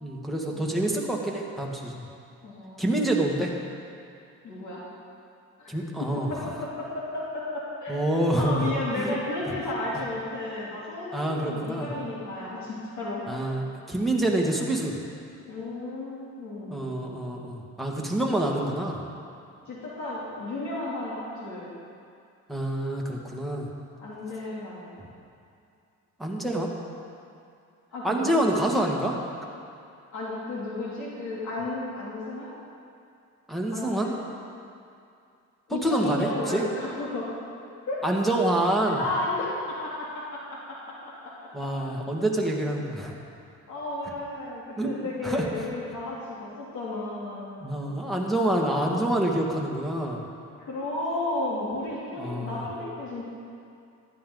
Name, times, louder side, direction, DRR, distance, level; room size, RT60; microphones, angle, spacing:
voice 1, 0.0-2.1 2.8-3.5 5.7-6.3 7.9-9.1 11.1-11.9 13.3-15.0 16.7-19.0 22.5-23.7 26.2-26.7 28.0-29.2 33.5-34.1 35.8-36.7 38.0-39.0 41.5-43.1 44.8-44.9 45.2-45.5 47.6-50.2 52.2-52.6, right 1 dB, ahead, -3 dB, 1.9 m, -27 dB
voice 2, 0.5-0.9 2.4-3.0 4.4-4.8 5.6-5.7 6.1-13.2 15.5-16.9 19.7-21.7 24.0-24.9 27.9-28.4 30.1-32.6 33.7-34.2 35.7-37.3 37.9-38.0 39.0-41.3 41.6-41.7 43.7-47.5 50.6-53.2, left 2 dB, 75° left, -6 dB, 2.9 m, -33 dB
14.5 x 11.0 x 4.0 m, 2.5 s
cardioid pair, 90°, 30 cm